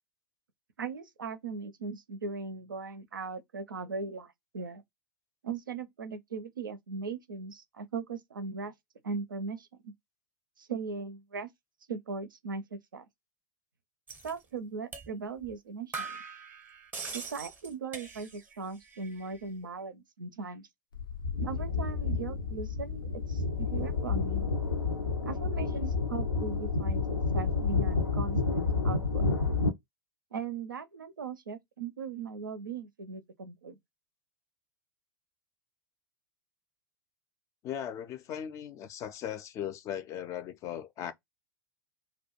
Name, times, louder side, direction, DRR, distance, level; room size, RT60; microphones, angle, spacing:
voice 1, 0.8-4.8 5.4-8.7 9.0-9.9 10.6-11.5 11.9-13.0 14.2-16.2 17.1-20.6 21.4-23.0 23.3-24.5 25.3-27.0 27.3-29.2 30.3-33.8, right 4 dB, 75° right, 0.4 m, -39 dB
sound 1, 14.1-14.3 14.9-15.1 15.4-15.5 15.9-18.6 18.8-19.4, right 4 dB, 15° right, 0.6 m, -42 dB
sound 2, 20.9-29.7, left 4 dB, 85° left, 0.5 m, -30 dB
voice 2, 37.6-41.1, left 9 dB, 30° left, 0.4 m, -38 dB
2.2 x 2.1 x 2.8 m
figure-of-eight pair, 90°, 11 cm